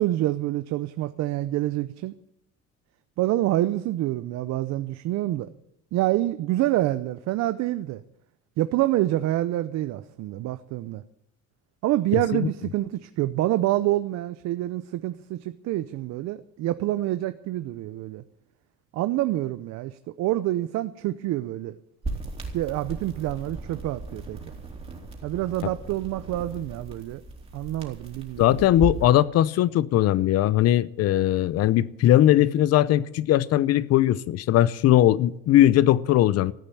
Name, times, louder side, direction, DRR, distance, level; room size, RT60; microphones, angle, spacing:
voice 1, 0.0-2.1 3.2-5.5 5.9-8.0 8.6-11.0 11.8-18.2 18.9-21.7 22.5-24.4 25.2-27.2 27.5-28.9, right 15 dB, 60° right, 0.7 m, -27 dB
sound 1, 22.0-29.1, right 3 dB, 20° right, 3.2 m, -36 dB
voice 2, 28.4-36.5, left 13 dB, 55° left, 0.7 m, -20 dB
14.5 x 8.8 x 9.2 m
cardioid pair, 140°, 31 cm